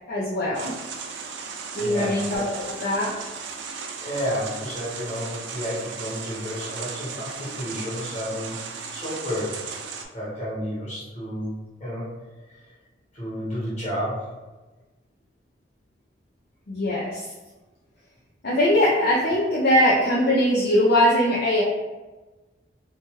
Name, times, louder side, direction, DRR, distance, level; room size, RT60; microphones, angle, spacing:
voice 1, 0.1-0.7 1.7-3.2 16.7-17.3 18.4-21.6, left 1 dB, 60° left, -6 dB, 0.5 m, -21 dB
sound 1, 0.5-10.1, right 5 dB, 90° right, 0.4 m, -36 dB
voice 2, 1.8-2.1 4.0-9.5 10.1-11.5 11.8-12.1 12.4-12.6 13.1-14.3, equal, 40° left, -8 dB, 1.4 m, -31 dB
2.8 x 2.2 x 3.1 m, 1.2 s
head